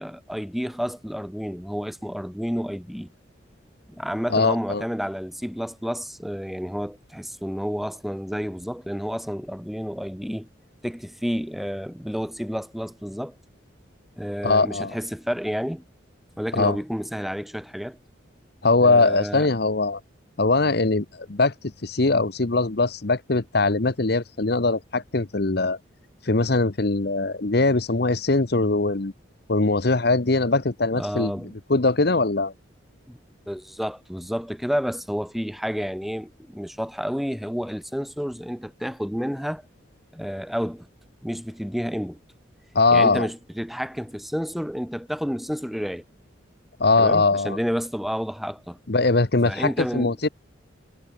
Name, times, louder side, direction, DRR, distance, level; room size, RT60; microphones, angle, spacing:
voice 1, 0.0-3.1 3.9-10.5 10.8-13.3 14.2-15.8 16.4-18.0 18.8-19.5 30.9-31.5 33.1-33.2 33.5-39.6 40.1-40.9 41.2-42.2 42.9-46.0 47.0-48.8 49.4-50.2, equal, ahead, 1.4 m, -30 dB
voice 2, 4.3-4.8 14.4-14.9 16.5-16.8 18.6-20.0 20.4-21.5 21.8-25.8 26.2-29.1 29.5-31.3 31.7-32.5 42.7-43.3 46.8-47.6 48.9-50.3, left 3 dB, 50° left, 1.0 m, -21 dB
head